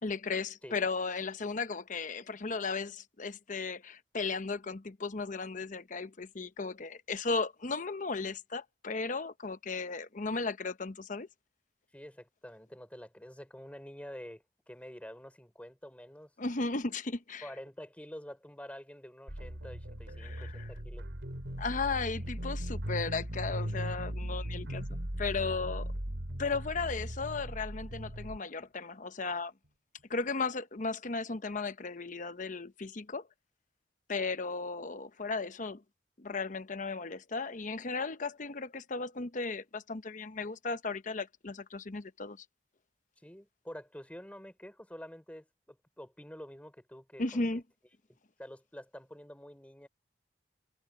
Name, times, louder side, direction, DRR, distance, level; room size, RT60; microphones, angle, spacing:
voice 1, 0.0-11.3 16.4-17.5 20.2-20.7 21.6-25.9 26.4-29.5 30.1-33.3 34.1-35.8 36.2-42.4 47.2-47.6, left 4 dB, 45° left, 0.9 m, -35 dB
voice 2, 11.9-16.3 17.4-21.1 25.6-25.7 43.2-47.5 48.1-49.9, equal, 10° left, 4.7 m, -48 dB
sound 1, 19.3-28.4, equal, 90° right, 2.7 m, -38 dB
head